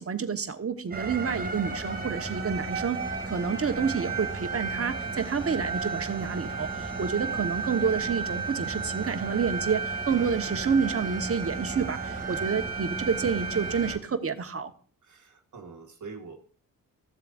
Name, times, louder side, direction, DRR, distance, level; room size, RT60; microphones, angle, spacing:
voice 1, 0.0-14.7, right 6 dB, 40° right, 9 dB, 1.1 m, -29 dB
sound 1, 0.9-14.0, right 4 dB, 25° right, 2.5 m, -33 dB
voice 2, 15.0-16.4, right 4 dB, 55° right, 2 dB, 1.4 m, -44 dB
14.5 x 7.6 x 2.5 m, 0.44 s
cardioid pair, 90°, 35 cm